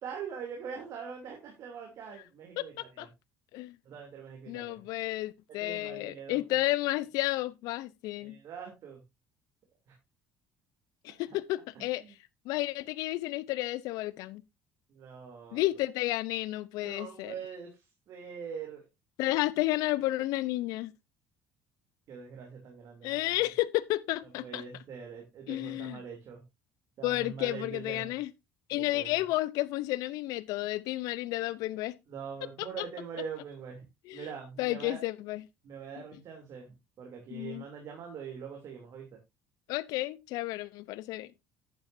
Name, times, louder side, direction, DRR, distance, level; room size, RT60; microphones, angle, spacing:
voice 1, 0.0-3.1 3.8-4.8 5.6-6.4 8.2-9.0 9.9-10.0 11.7-12.1 14.9-15.7 16.8-17.7 18.1-18.9 22.1-23.5 24.4-26.4 27.0-28.1 28.7-29.2 32.1-33.8 34.1-35.0 35.6-36.7 37.0-39.1, right 6 dB, 60° right, 2.9 m, -43 dB
voice 2, 2.6-3.1 3.5-3.8 4.5-8.4 11.0-12.0 12.5-14.4 15.5-17.3 19.2-20.9 23.0-24.6 25.5-26.0 27.0-28.3 28.7-32.0 32.6-32.9 34.1-34.3 34.6-35.4 37.3-37.6 39.7-41.3, left 17 dB, 70° left, 0.7 m, -32 dB
10.5 x 9.7 x 2.7 m
hypercardioid pair, 70°, 6 cm